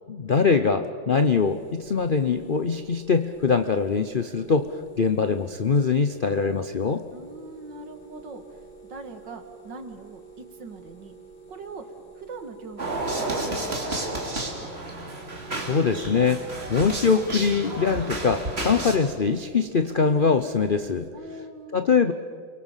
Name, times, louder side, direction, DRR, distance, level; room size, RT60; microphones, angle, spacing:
voice 1, 0.1-4.7 5.0-7.0 15.6-16.4 16.7-21.1 21.7-22.1, left 5 dB, 65° left, 9 dB, 0.5 m, -23 dB
sound 1, 1.3-21.1, right 4 dB, 90° left, 3.2 m, -49 dB
voice 2, 7.1-8.6 8.9-11.2 11.5-11.8 12.2-14.7 21.1-21.8, right 3 dB, 60° right, 7 dB, 2.5 m, -41 dB
sound 2, 12.8-19.0, right 2 dB, 30° right, 3.2 m, -31 dB
29.5 x 23.0 x 7.4 m, 2.1 s
omnidirectional pair, 2.2 m